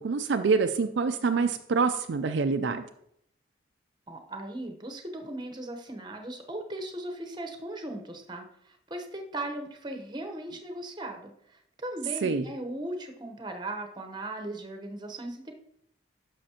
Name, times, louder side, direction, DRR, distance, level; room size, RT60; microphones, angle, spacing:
voice 1, 0.0-2.8 12.2-12.5, right 4 dB, 65° right, 7 dB, 0.4 m, -26 dB
voice 2, 4.1-15.5, right 1 dB, 20° right, 5 dB, 0.9 m, -38 dB
10.5 x 6.4 x 2.9 m, 0.72 s
head